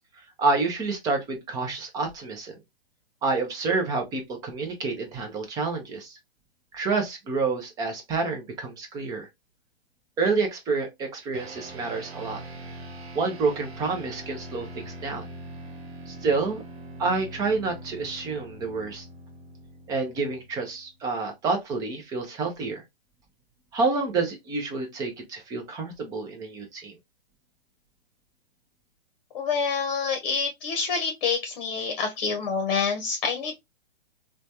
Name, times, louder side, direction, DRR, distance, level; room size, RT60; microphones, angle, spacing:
voice 1, 0.4-2.5 3.2-6.1 6.7-9.3 10.2-12.4 13.1-15.3 16.1-16.6 17.0-19.0 19.9-22.8 23.7-26.9, right 4 dB, 10° right, 0.4 m, -28 dB
sound 1, 11.3-21.0, right 1 dB, 90° right, 0.9 m, -42 dB
voice 2, 29.3-33.5, left 5 dB, 45° left, 0.8 m, -27 dB
3.1 x 2.2 x 2.5 m
hypercardioid pair, 135°, 31 cm